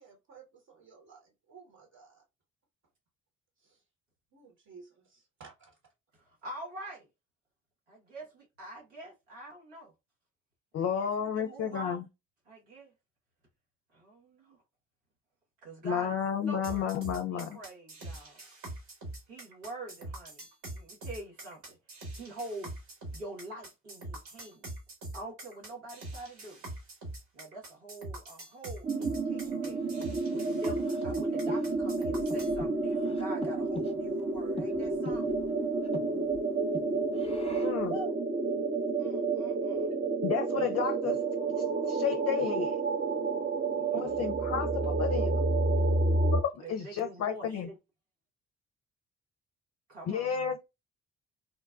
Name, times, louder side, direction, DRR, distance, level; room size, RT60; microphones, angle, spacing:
voice 1, 0.0-2.2 3.6-3.8 4.3-5.7, right 5 dB, 50° right, 1.2 m, -55 dB
voice 2, 6.1-7.1 7.9-9.9 10.7-12.1 12.4-12.9 13.9-14.6 15.6-16.2 16.5-16.9 17.1-18.4 19.3-20.4 20.7-21.8 22.2-22.8 23.1-24.7 25.1-26.6 27.3-29.8 30.3-35.3 37.0-38.1 39.0-39.9 43.8-44.1 46.6-47.8 49.9-50.3, right 1 dB, 85° right, 1.3 m, -45 dB
voice 3, 10.7-12.0 15.8-17.6 37.6-37.9 40.2-41.2 41.9-42.8 43.9-45.4 46.3-47.7 50.1-50.6, left 8 dB, 40° left, 0.5 m, -32 dB
sound 1, 16.6-32.6, right 1 dB, 70° right, 1.7 m, -43 dB
sound 2, 28.8-46.4, right 3 dB, 25° right, 0.7 m, -30 dB
Breathing, 29.4-37.9, left 3 dB, 15° left, 0.8 m, -46 dB
3.9 x 2.2 x 2.3 m
hypercardioid pair, 45°, 37 cm